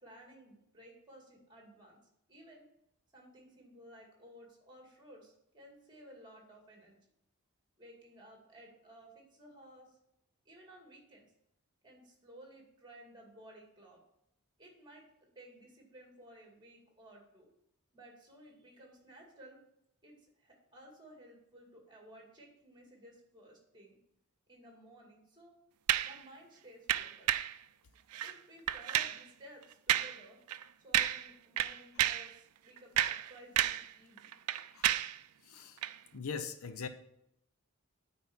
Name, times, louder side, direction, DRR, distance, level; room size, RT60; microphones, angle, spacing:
voice 1, 0.0-2.0 2.3-2.6 3.1-7.0 7.8-10.0 10.5-11.3 11.8-14.0 14.6-15.0 15.4-17.5 17.9-19.6 20.0-20.1 20.4-24.0 24.5-25.5 26.0-27.4 28.2-30.4 30.8-34.3, right 1 dB, 20° right, 1 dB, 2.3 m, -56 dB
sound 1, 25.9-26.2 26.9-27.6 28.1-28.4 28.7-29.2 29.9-30.2 30.5-30.6 30.9-31.3 31.6-32.3 32.8-33.9 34.2-35.2 35.8-36.0, right 12 dB, 90° right, 0.4 m, -31 dB
voice 2, 35.4-35.8 36.1-36.9, left 5 dB, 70° left, 9 dB, 0.7 m, -41 dB
9.1 x 4.3 x 7.3 m, 0.78 s
head